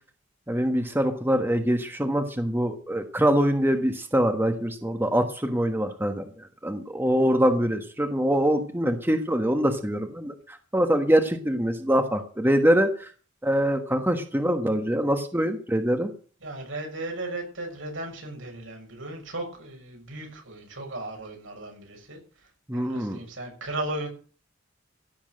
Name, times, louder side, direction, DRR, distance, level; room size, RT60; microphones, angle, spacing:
voice 1, 0.5-13.1 13.4-16.1 22.7-23.2, equal, 10° right, 6 dB, 1.3 m, -24 dB
voice 2, 16.4-22.2 22.7-24.1, right 2 dB, 80° right, 2 dB, 7.0 m, -36 dB
16.0 x 7.4 x 7.7 m, 0.40 s
head